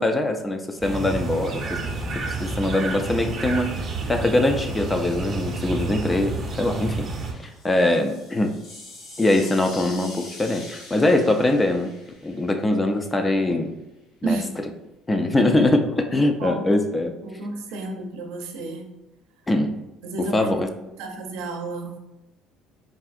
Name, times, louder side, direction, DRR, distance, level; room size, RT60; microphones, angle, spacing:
voice 1, 0.0-1.8 2.4-7.1 7.4-8.6 9.2-11.9 12.2-13.7 14.2-14.7 15.1-17.1 19.5-19.8 20.2-20.7, left 1 dB, 15° left, 6 dB, 0.3 m, -22 dB
sound 1, 0.8-7.3, right 2 dB, 35° right, 0.6 m, -29 dB
sound 2, 7.3-13.2, left 2 dB, 50° left, 1.0 m, -44 dB
voice 2, 14.2-14.5 16.4-16.8 17.2-18.9 20.0-22.0, right 3 dB, 85° right, 2 dB, 0.6 m, -32 dB
3.6 x 2.4 x 2.4 m, 0.97 s
cardioid pair, 115°, 0 cm